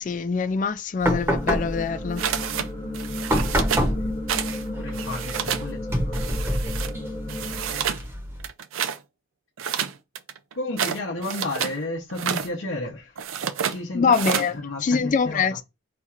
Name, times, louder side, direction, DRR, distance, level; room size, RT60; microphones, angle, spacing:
voice 1, 0.0-2.2 13.9-15.6, left 5 dB, 40° left, 0.3 m, -24 dB
sound 1, 1.0-8.5, equal, 10° right, 0.8 m, -28 dB
sound 2, 1.3-7.8, left 1 dB, 25° left, 1.0 m, -34 dB
sound 3, 2.2-2.7 2.9-3.9 4.3-4.6 4.9-5.7 6.1-6.9 7.3-8.0 8.4-9.0 9.6-11.8 12.1-12.5 13.2-13.8 14.1-14.5, right 8 dB, 80° right, 0.5 m, -29 dB
voice 2, 3.8-4.1 4.8-6.5 10.5-13.2 13.7-15.5, left 2 dB, 70° left, 0.8 m, -33 dB
4.2 x 2.4 x 4.3 m
head